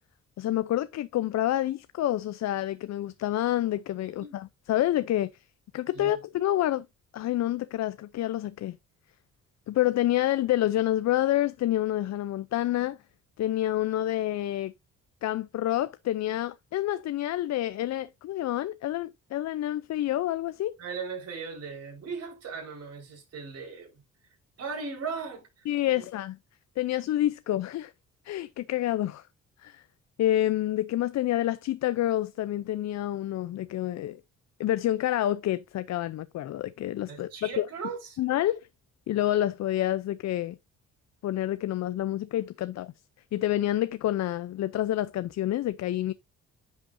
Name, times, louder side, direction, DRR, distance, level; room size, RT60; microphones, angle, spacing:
voice 1, 0.4-5.3 5.7-6.9 7.1-8.8 9.7-13.0 13.4-14.7 15.2-20.8 25.7-26.4 26.8-27.9 28.2-29.2 29.6-29.8 30.2-34.2 34.6-37.6 38.2-38.7 39.1-40.6 41.2-42.9 43.3-46.1, left 13 dB, 60° left, 0.6 m, -28 dB
voice 2, 20.8-24.0 24.6-26.0 37.1-38.2, right 5 dB, 55° right, 4.6 m, -38 dB
10.5 x 5.6 x 2.6 m
cardioid pair, 90°, 30 cm